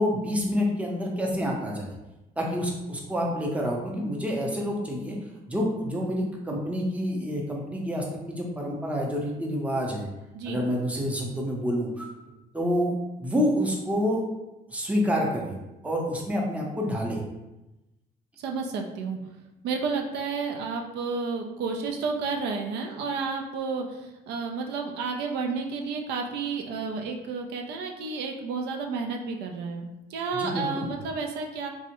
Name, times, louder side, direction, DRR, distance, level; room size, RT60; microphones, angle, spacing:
voice 1, 0.0-1.9 2.4-5.2 5.5-10.1 10.4-12.1 12.5-12.9 13.2-14.2 14.7-15.6 15.8-17.2 30.3-30.8, equal, 10° right, -1 dB, 0.6 m, -28 dB
voice 2, 18.4-19.2 19.6-31.7, right 4 dB, 80° right, 2 dB, 0.4 m, -31 dB
3.5 x 2.0 x 2.9 m, 0.99 s
cardioid pair, 110°, 17 cm